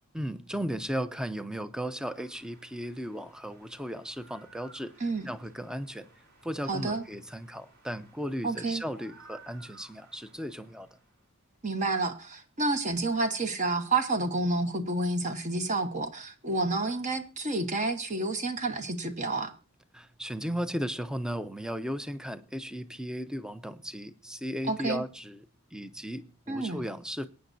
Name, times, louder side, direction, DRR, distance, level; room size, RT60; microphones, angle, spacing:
voice 1, 0.1-6.1 6.4-11.0 19.9-25.5 25.7-27.3, equal, 5° right, 0.7 m, -36 dB
sound 1, 2.1-11.2, right 3 dB, 50° right, 4.7 m, -58 dB
voice 2, 6.7-7.0 8.4-8.8 11.6-19.5 24.7-25.0 26.5-26.8, right 2 dB, 35° right, 1.2 m, -29 dB
23.0 x 9.2 x 2.6 m
head